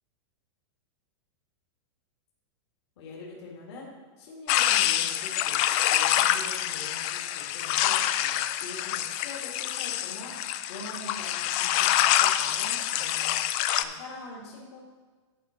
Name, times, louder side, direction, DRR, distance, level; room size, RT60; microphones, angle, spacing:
voice 1, 3.0-3.9 4.2-13.4 13.8-14.8, left 2 dB, 60° left, -3 dB, 2.5 m, -44 dB
sound 1, 4.5-13.8, left 13 dB, 35° left, 0.4 m, -26 dB
11.5 x 4.8 x 4.6 m, 1.4 s
hypercardioid pair, 140°, 16 cm